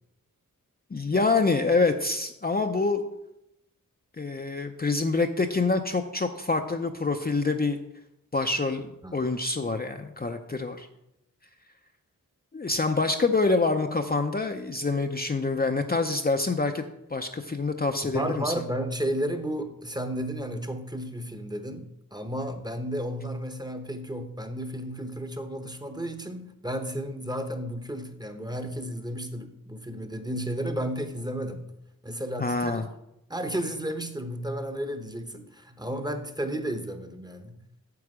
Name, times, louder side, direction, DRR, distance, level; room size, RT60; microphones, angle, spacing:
voice 1, 0.9-3.0 4.2-7.8 8.3-10.9 12.5-18.5 32.4-32.9, left 3 dB, 30° left, 5 dB, 0.5 m, -26 dB
voice 2, 18.1-31.6 32.0-32.9 33.3-37.6, right 1 dB, 10° right, 7 dB, 0.9 m, -33 dB
9.5 x 7.1 x 4.9 m, 0.84 s
wide cardioid pair, 105°, 34 cm